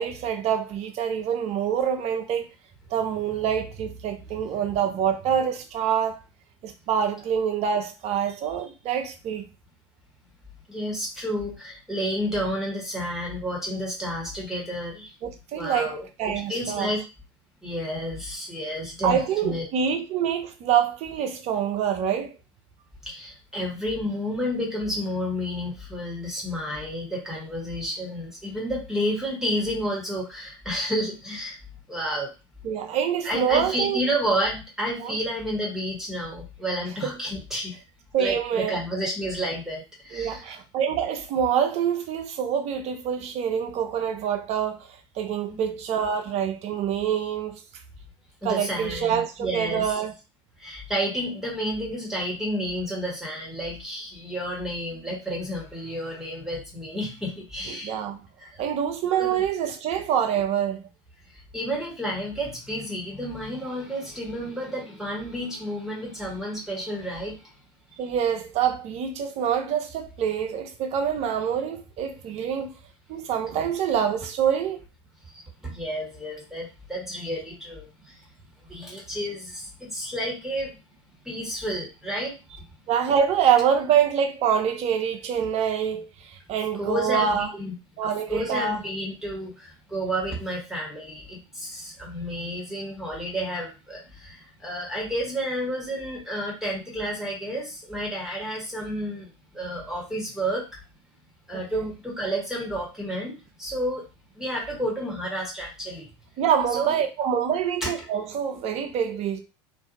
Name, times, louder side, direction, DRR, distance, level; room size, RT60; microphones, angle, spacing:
voice 1, 0.0-2.5 2.9-6.2 6.6-9.5 15.2-15.9 16.2-16.9 19.0-22.4 32.6-34.0 35.0-35.2 37.0-37.1 38.1-38.8 40.1-47.6 48.4-50.1 57.7-58.2 58.6-60.8 68.0-72.7 73.1-74.8 82.9-87.5 88.0-88.8 101.5-101.8 106.4-109.4, right 8 dB, 45° right, 0.6 m, -26 dB
voice 2, 10.7-15.1 15.5-17.0 17.6-19.6 23.0-31.6 31.9-32.3 33.2-37.8 38.2-40.5 45.5-45.7 48.4-50.0 50.6-58.0 58.4-58.6 59.2-59.4 61.3-67.5 75.3-78.2 78.6-80.8 81.2-82.3 86.7-87.7 88.3-100.6 101.5-104.1 104.3-106.1 106.7-107.0 107.8-107.9, equal, 5° right, 1.4 m, -31 dB
2.6 x 2.3 x 2.6 m
hypercardioid pair, 75°, 15 cm